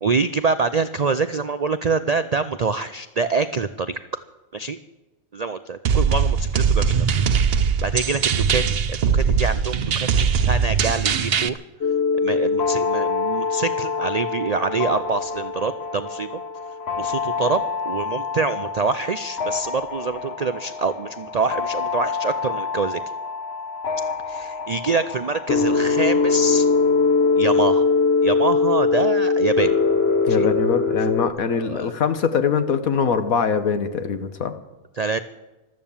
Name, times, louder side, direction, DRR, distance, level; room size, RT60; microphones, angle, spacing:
voice 1, 0.0-4.0 4.5-4.8 5.3-7.2 7.8-11.6 12.2-16.4 17.0-23.0 24.3-26.7 27.4-27.9 28.2-29.7 30.4-30.5 31.6-31.9 35.0-35.2, right 4 dB, 80° right, 11 dB, 0.3 m, -25 dB
sound 1, 5.8-11.5, right 6 dB, 55° right, 0.8 m, -20 dB
sound 2, 11.8-31.3, left 4 dB, 50° left, 1.4 m, -23 dB
voice 2, 30.3-34.5, left 6 dB, 75° left, 9 dB, 1.6 m, -22 dB
14.5 x 13.0 x 7.2 m, 1.0 s
omnidirectional pair, 1.5 m